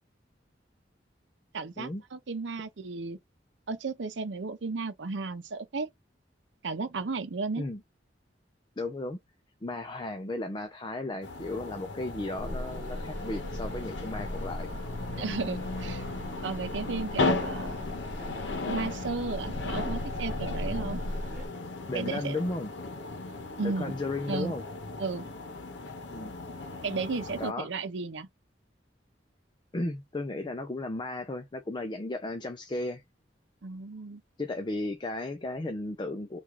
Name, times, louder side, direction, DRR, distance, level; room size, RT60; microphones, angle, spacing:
voice 1, 1.5-3.2 3.7-5.9 6.6-7.6 15.2-16.0 16.4-17.8 18.7-21.0 21.9-22.4 23.6-23.9 24.3-24.5 25.0-25.3 26.8-28.3 33.6-34.2, right 4 dB, 85° right, 0.6 m, -34 dB
voice 2, 8.8-9.2 9.6-14.7 21.9-22.7 23.6-24.6 26.1-26.3 27.4-27.7 29.7-33.0 34.4-36.4, left 2 dB, 25° left, 0.5 m, -35 dB
sound 1, 11.2-27.5, left 3 dB, 85° left, 0.8 m, -36 dB
sound 2, 12.4-21.5, equal, 45° right, 1.0 m, -39 dB
3.5 x 2.4 x 3.1 m
head